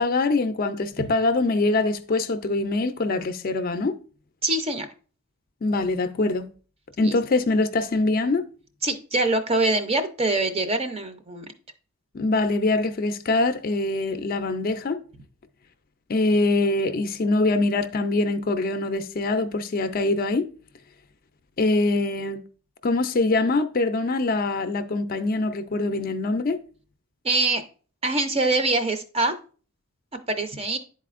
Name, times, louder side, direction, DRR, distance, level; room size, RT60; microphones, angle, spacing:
voice 1, 0.0-3.9 5.6-6.5 7.0-8.5 12.1-15.0 16.1-20.5 21.6-22.4 22.8-26.6, left 2 dB, 40° left, 0.4 m, -23 dB
voice 2, 4.4-4.9 7.0-7.1 8.8-11.5 27.2-27.6 28.0-29.3 30.3-30.8, right 2 dB, 25° right, 0.5 m, -24 dB
10.5 x 4.1 x 2.4 m
head